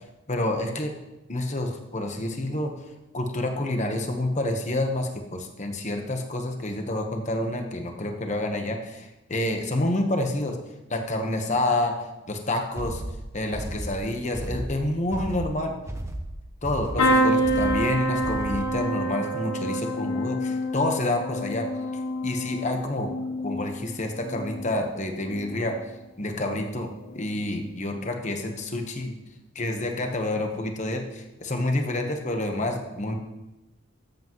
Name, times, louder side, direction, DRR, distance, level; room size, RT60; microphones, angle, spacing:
voice 1, 0.3-0.9 1.3-2.7 3.1-10.6 10.9-12.0 12.3-13.0 13.3-15.8 16.6-21.7 22.2-23.1 23.4-25.7 26.2-29.1 29.5-33.1, left 1 dB, 35° left, 4 dB, 1.1 m, -28 dB
sound 1, 12.7-18.8, right 1 dB, 15° right, 0.7 m, -34 dB
sound 2, 17.0-24.8 25.2-25.8 27.0-27.2 27.5-27.6, equal, 85° left, 1.6 m, -27 dB
13.0 x 8.2 x 3.1 m, 1.0 s
head